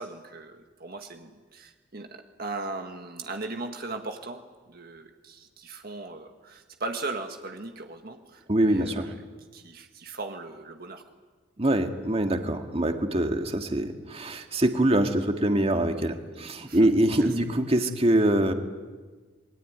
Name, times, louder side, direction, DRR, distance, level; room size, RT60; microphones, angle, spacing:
voice 1, 0.0-4.4 4.7-9.2 9.5-11.0 16.6-16.8 17.2-17.3, right 3 dB, 55° right, 5 dB, 1.7 m, -38 dB
voice 2, 8.5-9.1 11.6-18.5, right 1 dB, 30° right, 5 dB, 1.9 m, -24 dB
27.5 x 22.0 x 9.6 m, 1.3 s
head